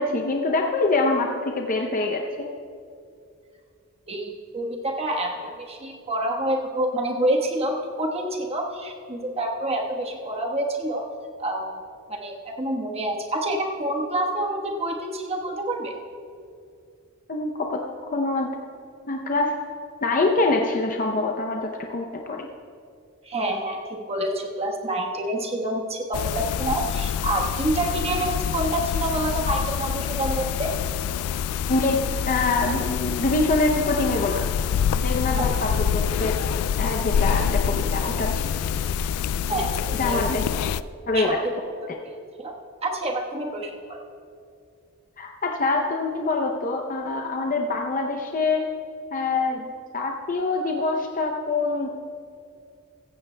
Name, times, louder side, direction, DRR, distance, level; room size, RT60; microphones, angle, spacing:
voice 1, 0.0-2.5 17.3-17.8 18.1-18.6 19.1-19.6 20.0-22.5 31.7-34.4 35.0-36.4 36.8-38.5 40.0-40.4 41.1-41.4 45.2-48.7 49.1-51.9, left 3 dB, 40° left, 2 dB, 0.6 m, -25 dB
voice 2, 4.1-11.0 11.4-11.7 12.1-15.9 23.3-30.7 35.4-35.5 39.5-40.2 41.1-41.3 42.0-42.1 42.4-42.5 42.8-43.7, right 1 dB, 30° right, 0 dB, 1.2 m, -27 dB
sound 1, 26.1-40.8, left 8 dB, 80° left, 0.3 m, -26 dB
15.5 x 14.5 x 2.2 m, 2.4 s
head